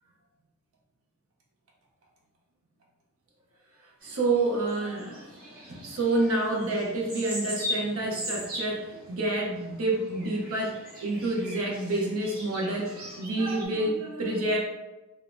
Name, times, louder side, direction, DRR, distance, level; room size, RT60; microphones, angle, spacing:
sound 1, 4.0-13.7, equal, 40° right, 1.0 m, -40 dB
voice 1, 4.0-5.2 5.5-14.6, right 2 dB, 65° right, -2 dB, 0.6 m, -28 dB
3.1 x 2.1 x 2.4 m, 1.1 s
head